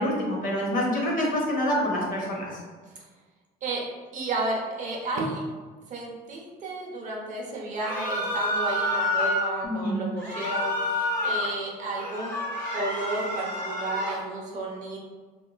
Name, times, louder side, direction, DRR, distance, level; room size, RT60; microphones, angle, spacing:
voice 1, 0.0-2.5 9.6-10.0, equal, 55° left, -3 dB, 0.8 m, -26 dB
voice 2, 3.6-5.4 5.9-12.5 12.7-15.0, right 2 dB, 50° right, -2 dB, 0.6 m, -32 dB
sound 1, 7.8-9.5 10.2-11.5 11.9-14.2, left 1 dB, 15° left, 1.0 m, -29 dB
2.9 x 2.2 x 2.3 m, 1.4 s
cardioid pair, 110°, 17 cm